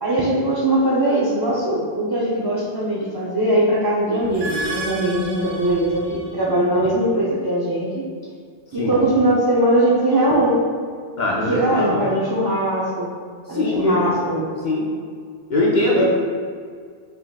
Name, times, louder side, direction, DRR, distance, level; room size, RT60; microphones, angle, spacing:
voice 1, 0.0-8.0 8.7-10.6 11.5-13.1 13.5-14.5 15.9-16.0, right 1 dB, 35° right, -6 dB, 0.3 m, -20 dB
sound 1, 4.2-6.5, right 2 dB, 80° right, 1.1 m, -32 dB
voice 2, 11.2-12.0 13.5-14.0 14.6-14.9 15.5-16.0, left 1 dB, 50° left, -4 dB, 0.6 m, -21 dB
4.2 x 3.6 x 2.3 m, 2.1 s
omnidirectional pair, 1.2 m